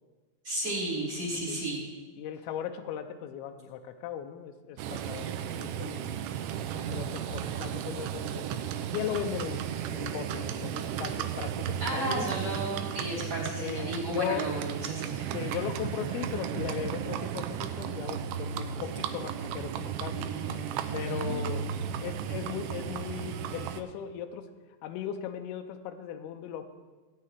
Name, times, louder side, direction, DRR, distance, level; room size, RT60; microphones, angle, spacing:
voice 1, 0.4-1.8 11.8-15.3 20.1-21.3, right 1 dB, 35° right, -6 dB, 3.4 m, -33 dB
voice 2, 2.2-6.2 6.7-8.6 8.9-9.6 9.9-12.3 13.6-14.5 15.3-20.3 20.9-21.7 22.0-24.5 24.8-26.6, left 9 dB, 90° left, 6 dB, 2.2 m, -37 dB
Livestock farm animals working animals, 4.8-23.8, right 9 dB, 80° right, 2.5 m, -34 dB
17.0 x 9.5 x 3.3 m, 1.3 s
omnidirectional pair, 5.1 m